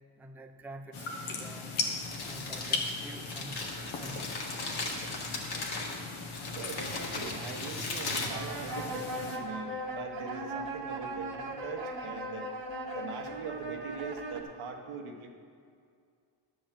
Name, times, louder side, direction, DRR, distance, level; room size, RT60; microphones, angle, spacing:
voice 1, 0.2-1.8 2.2-4.6, right 1 dB, 5° right, 5 dB, 0.5 m, -48 dB
sound 1, 0.9-9.4, left 4 dB, 85° left, 1.3 m, -39 dB
Crumpling crinkling, 1.8-9.1, left 2 dB, 50° left, 1.9 m, -38 dB
voice 2, 6.5-12.5 12.9-15.3, right 5 dB, 85° right, 3 dB, 1.3 m, -42 dB
sound 2, 8.3-14.4, right 1 dB, 65° right, 1.4 m, -38 dB
11.5 x 5.1 x 7.4 m, 2.3 s
cardioid pair, 115°, 48 cm